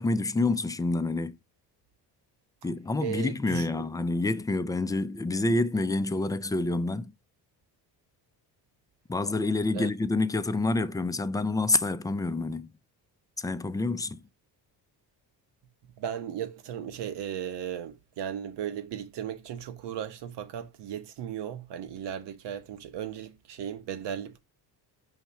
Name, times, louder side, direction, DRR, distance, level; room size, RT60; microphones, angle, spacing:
voice 1, 0.0-1.4 2.6-7.1 9.1-12.7 13.4-14.2, left 2 dB, 10° left, 0.3 m, -28 dB
voice 2, 3.0-3.9 9.7-9.9 16.0-24.4, right 9 dB, 75° right, 1.0 m, -36 dB
5.7 x 3.0 x 5.6 m
cardioid pair, 90°, 42 cm